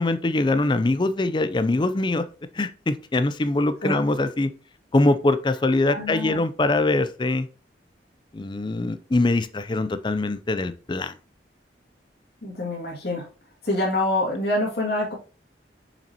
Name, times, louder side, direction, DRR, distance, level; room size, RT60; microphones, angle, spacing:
voice 1, 0.0-2.3 2.5-4.5 4.9-7.5 8.3-11.2, left 2 dB, 25° left, 0.4 m, -23 dB
voice 2, 5.8-6.4 12.4-13.3 13.6-15.2, left 1 dB, 60° left, 2.3 m, -26 dB
6.6 x 6.0 x 2.9 m
head